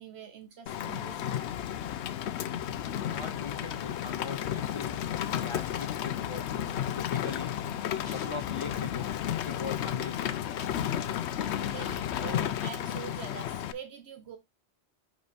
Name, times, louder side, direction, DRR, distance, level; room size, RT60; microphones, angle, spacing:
voice 1, 0.0-1.6 11.4-14.4, right 7 dB, 75° right, 1.0 m, -44 dB
Rain, 0.7-13.7, left 10 dB, 90° left, 0.9 m, -33 dB
voice 2, 1.2-1.5 3.1-5.0 5.3-9.1 9.4-10.4 11.4-11.9, left 4 dB, 55° left, 0.3 m, -42 dB
sound 1, 8.0-9.5 9.8-9.9 10.1-11.3 11.7-12.8, left 2 dB, 40° left, 2.1 m, -54 dB
5.3 x 5.1 x 4.2 m
omnidirectional pair, 1.1 m